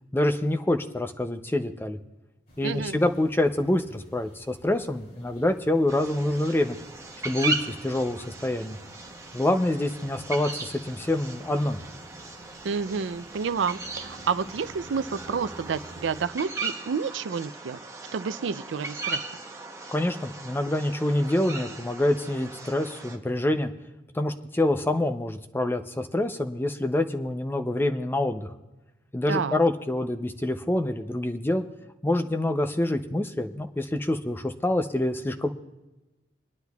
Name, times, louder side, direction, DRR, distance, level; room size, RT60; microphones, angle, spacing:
voice 1, 0.1-2.0 2.6-6.8 7.2-8.8 9.3-11.8 19.9-23.7 24.1-28.5 29.1-31.6 32.0-35.5, left 1 dB, 10° left, 6 dB, 0.5 m, -26 dB
sound 1, 2.5-16.3, right 1 dB, 50° left, 2.8 m, -51 dB
voice 2, 2.6-3.0 12.6-17.8 18.1-19.2 29.3-29.6, right 5 dB, 85° right, 14 dB, 0.4 m, -29 dB
sound 2, 5.9-23.2, right 3 dB, 15° right, 0.8 m, -38 dB
27.0 x 10.0 x 2.3 m, 1.1 s
head